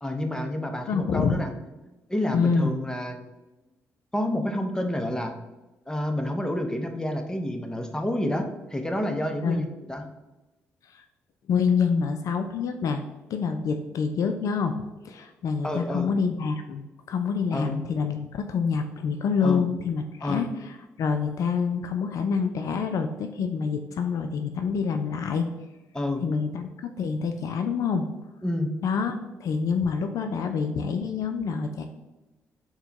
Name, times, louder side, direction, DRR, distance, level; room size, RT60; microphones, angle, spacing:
voice 1, 0.0-1.5 2.1-3.2 4.1-5.3 5.9-9.6 9.9-10.0 15.6-16.1 17.5-17.7 19.4-19.6 20.2-20.4 25.9-26.2 28.4-28.7, left 1 dB, 10° left, 5 dB, 0.7 m, -29 dB
voice 2, 0.9-1.4 2.3-2.7 9.4-9.7 10.9-11.0 11.5-13.0 13.3-14.7 15.0-25.4 26.2-26.7 27.0-28.1 28.8-31.9, left 5 dB, 60° left, 7 dB, 0.3 m, -27 dB
4.3 x 2.2 x 3.9 m, 1.1 s
hypercardioid pair, 50°, 6 cm